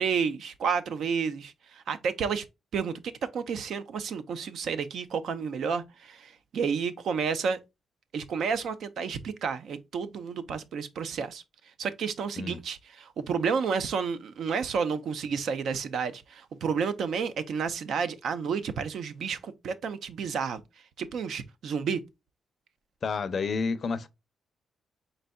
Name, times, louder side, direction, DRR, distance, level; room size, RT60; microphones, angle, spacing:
voice 1, 0.0-2.4 2.7-3.0 3.3-7.6 8.1-11.4 11.8-20.6 21.0-22.0, right 6 dB, 70° right, 0.6 m, -31 dB
voice 2, 23.0-24.1, left 4 dB, 45° left, 0.5 m, -30 dB
4.3 x 3.9 x 2.3 m
cardioid pair, 115°, 0 cm